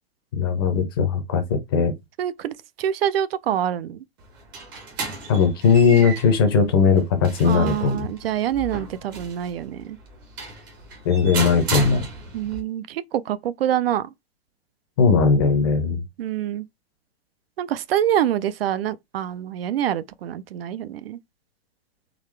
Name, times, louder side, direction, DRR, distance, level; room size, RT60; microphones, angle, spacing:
voice 1, 0.3-1.9 5.3-8.1 11.0-12.0 15.0-16.0, left 5 dB, 25° left, 0.5 m, -19 dB
voice 2, 2.2-4.0 7.4-10.0 12.3-14.1 16.2-16.7 17.6-21.2, right 10 dB, 70° right, 0.4 m, -26 dB
sound 1, 4.2-12.6, right 3 dB, 20° right, 0.6 m, -34 dB
3.9 x 3.2 x 3.1 m
supercardioid pair, 180°, 31 cm